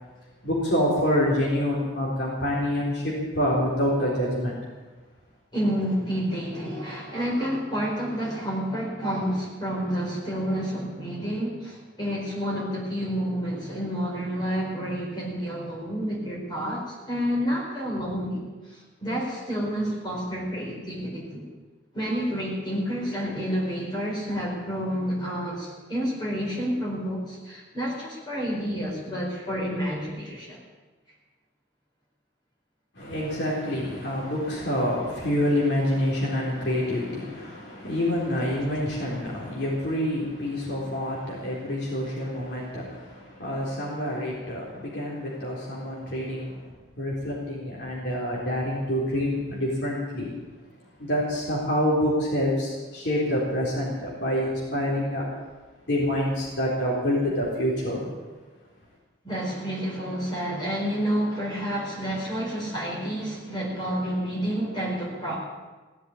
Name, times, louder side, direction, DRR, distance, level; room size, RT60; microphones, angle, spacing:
voice 1, 0.4-4.6 33.0-50.3 51.0-55.3 55.9-58.1, left 1 dB, 65° left, -5 dB, 4.0 m, -27 dB
voice 2, 5.5-18.4 18.7-21.5 21.9-30.6 59.2-65.4, equal, 25° left, -4 dB, 4.4 m, -29 dB
17.0 x 8.3 x 9.6 m, 1.3 s
head